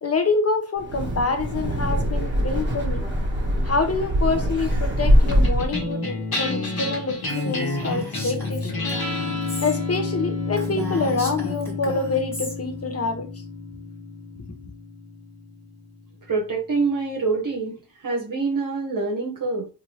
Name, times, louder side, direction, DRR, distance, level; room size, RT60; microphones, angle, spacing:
voice 1, 0.0-3.0 3.6-8.7 9.6-13.3, left 3 dB, 40° left, 0.7 m, -26 dB
Wind, 0.8-5.8, equal, 30° right, 1.2 m, -22 dB
sound 1, 5.3-15.9, left 2 dB, 65° left, 1.2 m, -30 dB
Female speech woman speaking, 7.3-9.8 10.1-10.2 10.5-12.5, left 3 dB, 5° left, 1.2 m, -35 dB
voice 2, 16.3-19.7, right 4 dB, 55° right, 0.9 m, -26 dB
2.7 x 2.6 x 3.0 m
cardioid pair, 50°, 39 cm